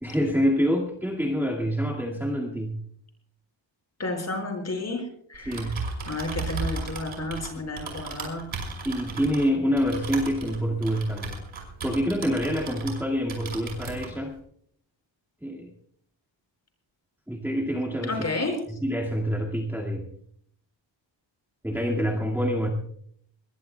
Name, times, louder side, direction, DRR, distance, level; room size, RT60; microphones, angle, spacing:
voice 1, 0.0-2.8 5.5-5.8 7.6-7.7 8.9-11.4 11.8-14.3 15.4-15.7 17.3-18.2 18.7-20.1 21.6-22.7, equal, 5° right, -3 dB, 2.1 m, -26 dB
voice 2, 4.0-5.0 5.3-5.7 6.1-8.4 18.1-18.5, left 2 dB, 35° left, 3 dB, 5.5 m, -31 dB
Typing, 5.3-13.0 13.3-14.1, right 4 dB, 80° right, 5.6 m, -35 dB
21.5 x 21.5 x 2.3 m, 0.64 s
wide cardioid pair, 145°, 47 cm